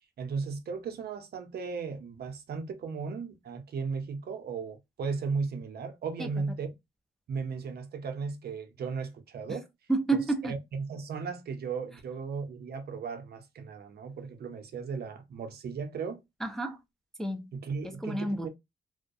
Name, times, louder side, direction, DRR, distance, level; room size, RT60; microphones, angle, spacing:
voice 1, 0.2-6.7 7.3-9.7 10.5-16.2 17.5-18.5, right 5 dB, 65° right, 0.6 m, -36 dB
voice 2, 9.9-10.5 16.4-16.8 17.2-17.5 17.8-18.5, right 3 dB, ahead, 0.4 m, -30 dB
2.3 x 2.1 x 2.5 m
cardioid pair, 95°, 18 cm